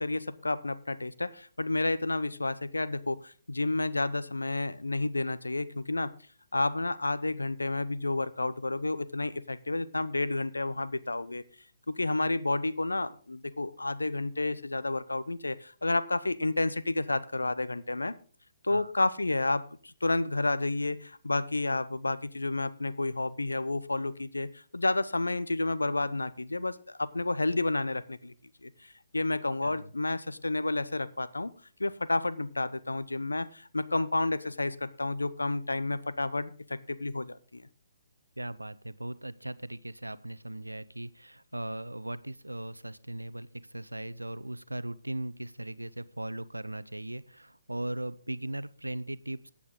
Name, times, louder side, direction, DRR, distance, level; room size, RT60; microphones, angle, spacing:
voice 1, 0.0-6.1 6.5-11.4 11.9-18.1 18.6-28.3 28.6-28.7 29.1-31.5 31.8-37.7, left 2 dB, 80° left, 15 dB, 0.8 m, -30 dB
voice 2, 29.6-29.9 38.4-49.5, right 1 dB, 85° right, 16 dB, 0.6 m, -38 dB
15.0 x 8.6 x 3.8 m, 0.42 s
figure-of-eight pair, 135°, 0 cm